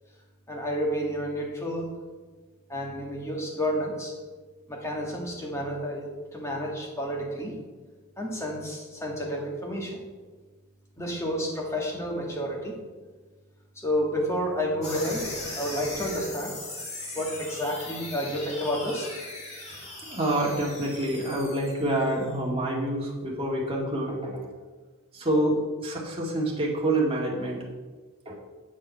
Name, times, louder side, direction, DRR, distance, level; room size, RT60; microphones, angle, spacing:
voice 1, 0.5-1.9 2.7-4.2 4.7-7.5 8.2-10.0 11.0-12.8 13.7-15.3 15.6-16.5 17.1-19.2, equal, 15° left, -1 dB, 1.6 m, -30 dB
sound 1, 14.8-22.3, left 2 dB, 35° left, 2.2 m, -39 dB
voice 2, 20.0-24.5 25.1-27.6 28.3-28.4, right 1 dB, 25° right, -3 dB, 1.9 m, -27 dB
8.7 x 5.3 x 5.5 m, 1.4 s
head